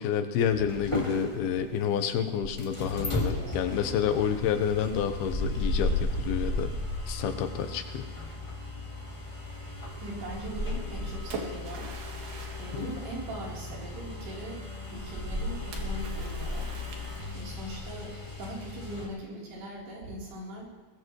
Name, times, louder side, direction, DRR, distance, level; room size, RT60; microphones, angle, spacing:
voice 1, 0.0-6.7 7.1-8.1 12.7-12.9, left 8 dB, 80° left, 8 dB, 2.8 m, -29 dB
sound 1, 0.7-19.1, left 2 dB, 50° left, 0.3 m, -35 dB
voice 2, 10.0-11.9 12.6-14.6 14.9-16.7 17.3-20.7, right 1 dB, 85° right, -5 dB, 5.9 m, -40 dB
Splash splatter, 10.7-13.9 15.7-17.7, right 4 dB, 60° right, 3.3 m, -44 dB
21.5 x 18.5 x 3.2 m, 1.2 s
omnidirectional pair, 4.5 m